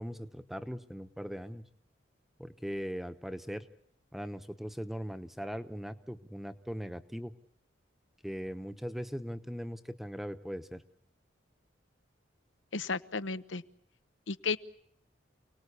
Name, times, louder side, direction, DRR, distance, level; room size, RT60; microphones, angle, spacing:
voice 1, 0.0-1.6 2.4-3.7 4.1-7.3 8.2-10.8, equal, ahead, 11 dB, 0.9 m, -39 dB
voice 2, 12.7-13.6 14.3-14.6, left 4 dB, 85° left, 13 dB, 0.9 m, -33 dB
29.0 x 19.0 x 8.3 m, 0.71 s
head